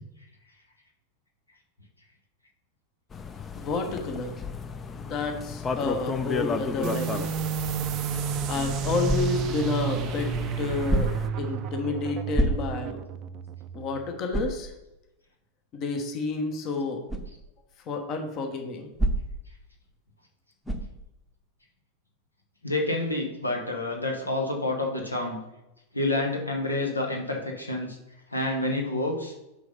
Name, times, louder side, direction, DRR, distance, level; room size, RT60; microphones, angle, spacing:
sound 1, 3.1-11.3, left 5 dB, 20° left, 0.5 m, -34 dB
voice 1, 3.6-4.3 5.0-7.2 8.5-10.3 10.6-11.1 11.4-13.0 13.7-14.7 15.7-17.0 17.9-18.9, left 3 dB, 35° left, 4 dB, 1.1 m, -30 dB
sound 2, 6.8-14.1, right 7 dB, 35° right, 0.4 m, -31 dB
sound 3, 9.0-9.6 10.9-11.4 12.3-13.0 13.5-13.6 14.3-14.7 17.1-17.3 19.0-19.5 20.6-21.0, right 1 dB, ahead, 0.9 m, -27 dB
voice 2, 22.6-25.4 25.9-28.0 28.3-29.3, left 2 dB, 80° left, 1 dB, 1.1 m, -28 dB
6.3 x 4.0 x 5.2 m, 0.93 s
figure-of-eight pair, 90°, 0 cm